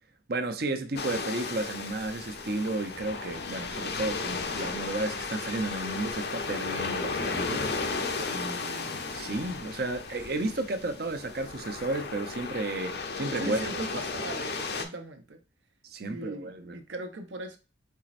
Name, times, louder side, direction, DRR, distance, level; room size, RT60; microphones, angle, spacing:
voice 1, 0.3-7.7 8.3-13.6 15.8-16.8, right 2 dB, 55° right, 0.6 m, -33 dB
sound 1, 1.0-14.9, left 4 dB, 60° left, 0.7 m, -34 dB
voice 2, 13.4-15.4 16.1-17.6, right 2 dB, 80° right, 0.9 m, -39 dB
4.5 x 4.1 x 2.5 m
head